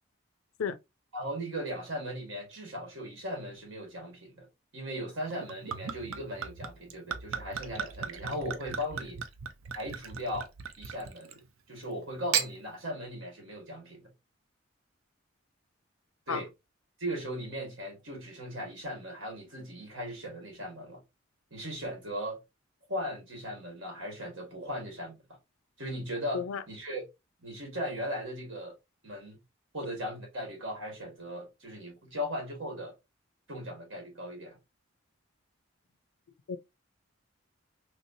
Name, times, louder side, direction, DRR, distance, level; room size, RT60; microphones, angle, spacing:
voice 1, 0.6-0.8 16.3-16.4 26.3-26.6 36.5-36.6, left 6 dB, 90° left, 0.4 m, -32 dB
voice 2, 1.1-4.5 4.7-9.2 9.7-10.5 10.8-11.4 11.7-14.1 16.3-16.5 17.0-21.0 21.5-22.4 22.9-25.2 25.8-27.1 27.4-28.8 29.0-29.4 29.7-32.9 33.5-34.6, equal, 65° right, 1.6 m, -38 dB
Gurgling / Chink clink / Liquid, 5.3-11.5 12.1-12.5, right 7 dB, 85° right, 0.5 m, -36 dB
3.2 x 2.8 x 2.6 m
head